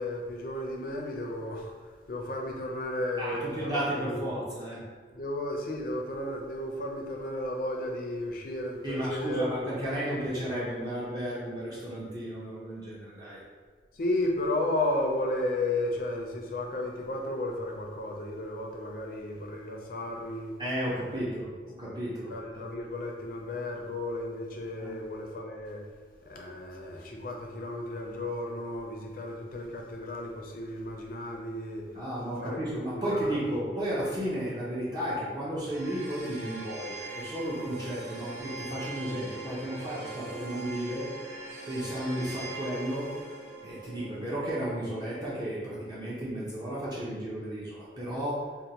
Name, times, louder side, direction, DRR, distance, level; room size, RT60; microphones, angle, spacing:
voice 1, 0.0-4.2 5.1-10.4 13.9-20.6 22.3-25.9 26.2-31.8 32.4-33.6, left 1 dB, 50° left, 1 dB, 0.5 m, -34 dB
voice 2, 3.2-4.8 8.8-13.4 20.6-22.3 24.8-24.9 31.9-41.1 41.7-43.2 43.6-48.4, right 1 dB, 25° right, -8 dB, 0.6 m, -33 dB
sound 1, 35.7-46.7, right 3 dB, 60° right, 0.7 m, -43 dB
4.4 x 2.2 x 2.8 m, 1.5 s
head